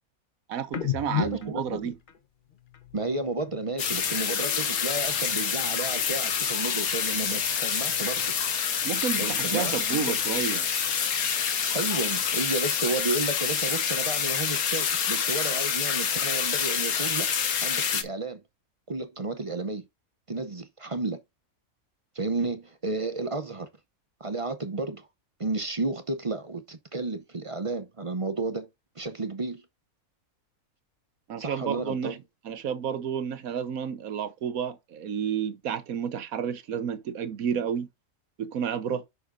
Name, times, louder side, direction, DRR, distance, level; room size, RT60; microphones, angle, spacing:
voice 1, 0.5-1.9 8.8-10.7 31.3-32.2 32.4-37.9 38.4-39.0, right 8 dB, 75° right, 1.3 m, -31 dB
sound 1, 0.7-4.3 4.6-6.4 6.7-8.6 8.9-10.8, left 9 dB, 40° left, 0.9 m, -39 dB
voice 2, 1.2-1.9 2.9-8.3 9.2-10.2 11.7-17.3 17.6-18.4 18.9-19.9 20.3-21.2 22.1-23.7 24.2-25.1 25.4-28.7 29.0-29.6 31.4-32.2, right 3 dB, 35° right, 0.6 m, -32 dB
sound 2, 3.8-18.0, left 7 dB, 85° left, 1.6 m, -27 dB
9.7 x 6.4 x 2.6 m
omnidirectional pair, 1.5 m